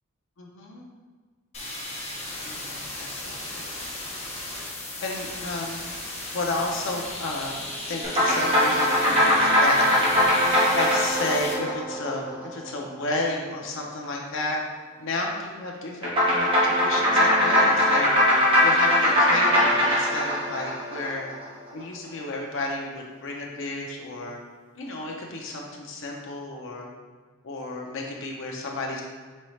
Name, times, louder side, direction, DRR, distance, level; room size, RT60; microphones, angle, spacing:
voice 1, 0.4-0.8 2.4-3.7 5.0-5.8 6.3-7.5 7.9-10.2 10.7-14.6 15.0-18.1 18.6-21.3 21.7-24.4 24.8-26.9 27.4-29.0, left 2 dB, 65° left, -1 dB, 0.5 m, -32 dB
sound 1, 1.5-11.5, left 1 dB, 30° left, 0.9 m, -36 dB
sound 2, 8.0-12.7 16.0-21.4, left 1 dB, 25° right, 1.2 m, -21 dB
4.2 x 3.8 x 3.2 m, 1.4 s
head